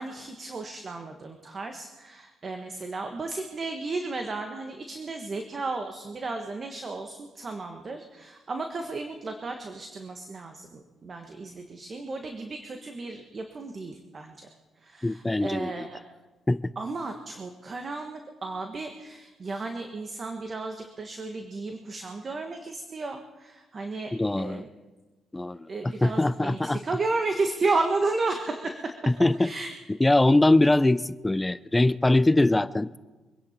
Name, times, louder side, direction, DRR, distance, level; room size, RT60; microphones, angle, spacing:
voice 1, 0.0-14.5 14.8-16.0 16.8-24.7 25.7-28.9 29.4-29.7, right 3 dB, 40° right, 5 dB, 1.4 m, -33 dB
voice 2, 15.0-15.9 16.5-16.6 24.1-24.6 25.3-26.8 29.1-29.5 29.9-33.0, left 2 dB, 15° left, 17 dB, 0.4 m, -22 dB
24.5 x 10.5 x 4.4 m, 1.2 s
cardioid pair, 90°, 0 cm